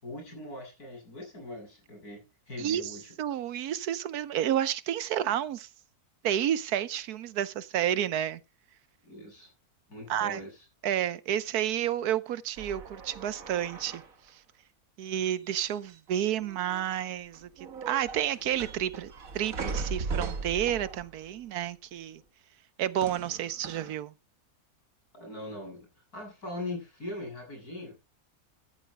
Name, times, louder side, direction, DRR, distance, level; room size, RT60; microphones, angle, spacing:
voice 1, 0.0-3.2 9.0-9.5 9.9-10.7 25.1-25.9 26.1-27.9, left 1 dB, 85° left, 7.9 m, -41 dB
voice 2, 2.6-5.7 6.2-8.4 10.1-10.4 10.8-14.0 15.0-17.5 17.9-22.2 22.8-24.1, right 11 dB, 85° right, 1.3 m, -30 dB
sound 1, 12.6-14.3 15.5-16.1 16.3-17.0 17.3-21.3 23.0-23.9, right 4 dB, 65° right, 1.9 m, -38 dB
14.0 x 13.5 x 2.2 m
omnidirectional pair, 1.6 m